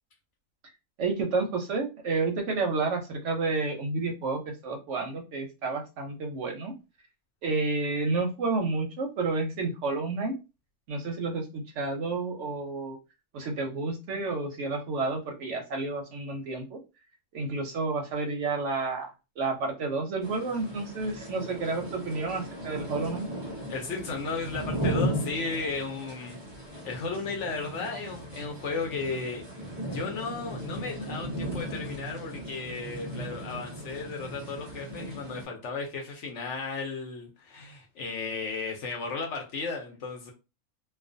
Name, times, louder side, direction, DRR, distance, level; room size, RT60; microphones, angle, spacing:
voice 1, 1.0-6.7 7.4-10.3 10.9-13.0 13.3-16.8 17.3-19.1 19.4-23.3, right 3 dB, 65° right, 0.8 m, -30 dB
sound 1, 20.2-35.4, right 1 dB, 40° right, 0.3 m, -36 dB
voice 2, 23.7-26.4 26.7-29.4 29.8-40.3, left 4 dB, 65° left, 0.8 m, -35 dB
2.4 x 2.2 x 2.5 m
omnidirectional pair, 1.5 m